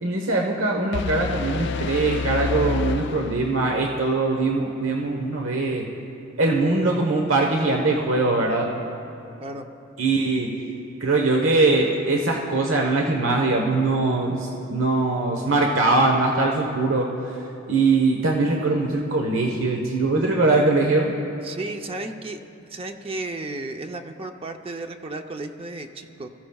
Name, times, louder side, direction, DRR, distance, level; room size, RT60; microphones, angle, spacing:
voice 1, 0.0-5.8 6.4-8.7 10.0-10.5 11.0-17.1 17.7-21.1, right 3 dB, 90° right, 1 dB, 1.2 m, -22 dB
sound 1, 0.9-3.9, left 5 dB, 60° left, 0.4 m, -28 dB
voice 2, 21.4-22.4 22.7-26.3, right 2 dB, 30° right, 5 dB, 0.6 m, -33 dB
23.5 x 15.0 x 2.4 m, 2.9 s
head